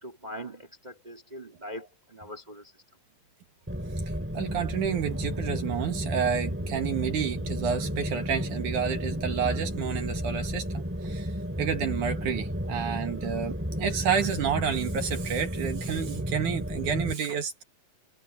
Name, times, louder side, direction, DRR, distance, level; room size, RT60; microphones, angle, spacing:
voice 1, 0.0-2.7, equal, 20° right, 1.1 m, -42 dB
sound 1, 3.7-17.1, equal, 5° right, 3.8 m, -32 dB
voice 2, 4.3-10.7 11.0-11.3 11.6-17.6, right 7 dB, 65° right, 3.1 m, -30 dB
sound 2, 4.9-10.0, right 2 dB, 90° right, 9.8 m, -46 dB
omnidirectional pair, 4.0 m